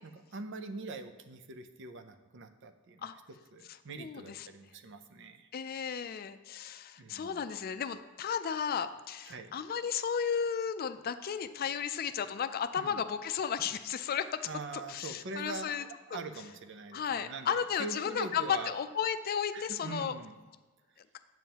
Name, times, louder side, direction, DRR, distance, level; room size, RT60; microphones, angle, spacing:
voice 1, 0.0-3.1 3.5-5.5 7.0-7.4 9.3-9.5 12.8-13.0 14.5-18.8 19.5-20.4, right 3 dB, 65° right, 9 dB, 0.6 m, -43 dB
voice 2, 3.9-4.5 5.5-14.5 14.9-15.8 16.1-16.2 16.9-20.1, left 7 dB, 50° left, 11 dB, 0.4 m, -34 dB
9.0 x 7.2 x 2.9 m, 1.3 s
head